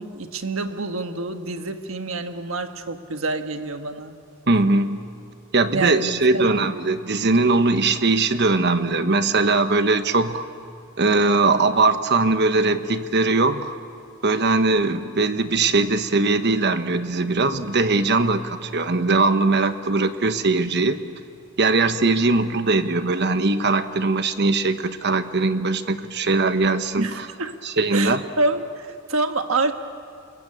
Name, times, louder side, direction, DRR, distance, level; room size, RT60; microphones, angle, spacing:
voice 1, 0.0-4.1 5.7-6.7 27.0-27.6 27.9-29.7, right 3 dB, 70° right, 7 dB, 1.4 m, -27 dB
voice 2, 4.5-5.0 5.5-10.5 11.0-13.8 14.2-21.0 21.6-27.3 27.6-28.2, right 3 dB, 50° right, 9 dB, 1.1 m, -20 dB
27.0 x 22.0 x 8.7 m, 2.4 s
head